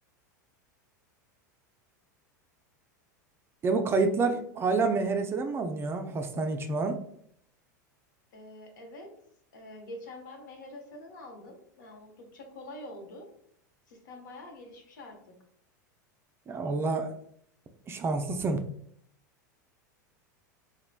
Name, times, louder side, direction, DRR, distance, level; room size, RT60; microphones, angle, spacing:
voice 1, 3.6-7.0 16.5-17.2 17.9-18.6, right 3 dB, 25° right, 6 dB, 0.4 m, -28 dB
voice 2, 8.3-9.1 9.5-13.3 13.9-15.3, left 1 dB, 75° left, 2 dB, 0.8 m, -46 dB
3.0 x 2.1 x 2.4 m, 0.66 s
hypercardioid pair, 100°, 10 cm